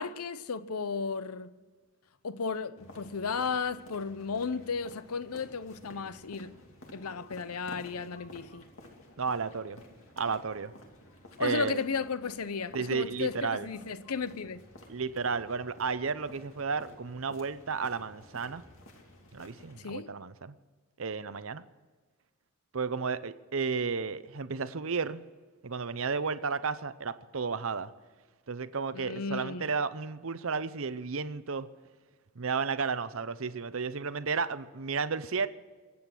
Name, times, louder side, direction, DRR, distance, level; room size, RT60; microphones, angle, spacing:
voice 1, 0.0-1.5 2.2-6.6 6.9-8.6 11.4-14.6 19.8-20.1 28.9-29.7, left 5 dB, 85° left, 0.7 m, -34 dB
sound 1, 2.8-19.8, left 1 dB, 65° left, 2.7 m, -53 dB
voice 2, 9.2-9.8 10.2-10.7 11.4-11.8 12.7-13.7 14.9-18.6 19.3-20.5 21.0-21.6 22.7-25.2 25.6-27.9 28.5-31.7 32.4-35.5, right 5 dB, 65° right, 0.7 m, -33 dB
24.0 x 8.7 x 6.1 m
head